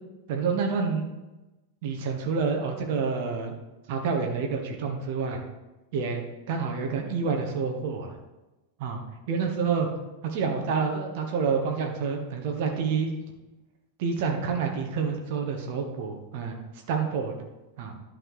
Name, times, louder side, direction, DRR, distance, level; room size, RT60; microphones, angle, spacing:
voice 1, 0.3-1.1 1.8-3.5 3.9-5.4 5.9-8.2 8.8-9.0 9.3-9.9 10.2-13.1 14.0-16.6 16.9-17.3 17.8-18.0, right 5 dB, 50° right, 3 dB, 1.3 m, -28 dB
11.0 x 3.9 x 4.8 m, 1.0 s
figure-of-eight pair, 90°, 0 cm